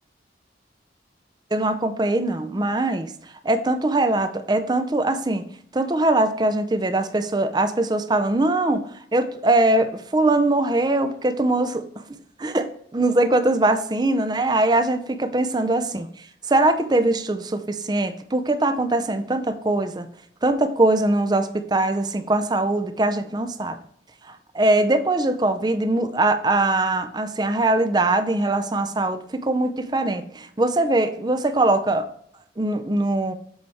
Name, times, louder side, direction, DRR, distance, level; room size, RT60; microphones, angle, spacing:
voice 1, 1.5-3.1 3.4-5.4 5.7-11.9 12.4-16.1 16.5-20.1 20.4-23.8 24.2-32.1 32.6-33.3, right 2 dB, 25° right, 0.5 m, -22 dB
7.8 x 4.6 x 3.4 m
head